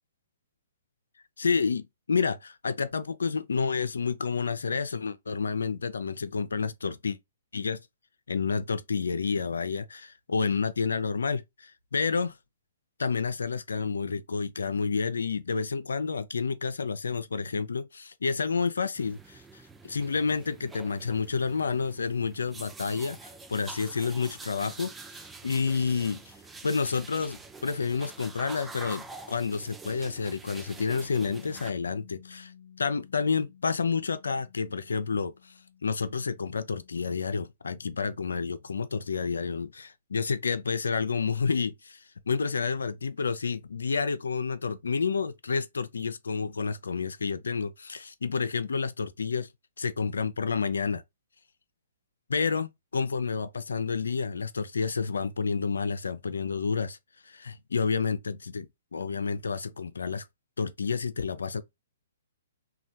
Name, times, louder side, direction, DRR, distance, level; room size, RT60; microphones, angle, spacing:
voice 1, 1.4-7.2 7.5-7.8 8.3-12.4 13.0-26.3 26.6-32.5 32.8-49.5 49.8-51.0 52.3-57.0 57.2-60.3 60.6-61.6, left 5 dB, 80° left, 0.4 m, -30 dB
sound 1, 19.0-31.7, right 3 dB, 10° right, 0.4 m, -46 dB
Bass guitar, 31.2-37.5, left 9 dB, 45° left, 0.8 m, -54 dB
3.2 x 2.2 x 2.6 m
hypercardioid pair, 130°, 0 cm